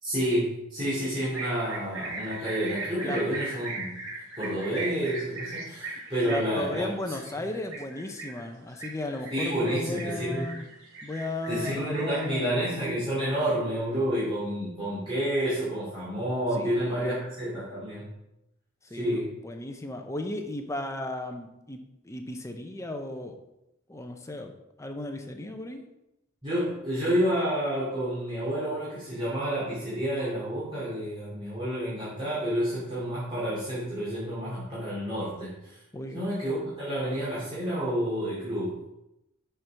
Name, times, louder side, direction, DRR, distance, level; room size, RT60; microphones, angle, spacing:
voice 1, 0.0-4.0 4.4-6.9 9.3-10.5 11.5-18.1 18.9-19.3 26.4-35.8 36.1-38.8, equal, 25° right, -10 dB, 2.6 m, -29 dB
sound 1, 1.3-12.2, right 3 dB, 80° right, 3.0 m, -38 dB
voice 2, 6.2-10.7 11.0-12.6 16.6-17.2 18.9-23.4 23.9-24.5 24.8-25.8 35.9-36.2, left 1 dB, 15° left, 4 dB, 0.7 m, -35 dB
6.2 x 5.6 x 5.7 m, 0.88 s
head